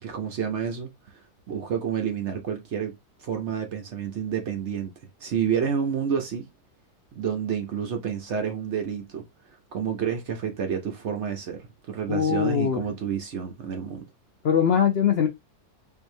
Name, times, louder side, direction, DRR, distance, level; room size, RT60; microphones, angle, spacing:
voice 1, 0.0-2.9 3.2-4.9 5.2-6.5 7.2-9.2 9.7-14.0, right 7 dB, 55° right, 0.9 m, -29 dB
voice 2, 12.1-12.8 14.4-15.3, left 7 dB, 65° left, 0.6 m, -21 dB
4.6 x 2.7 x 2.6 m
omnidirectional pair, 1.6 m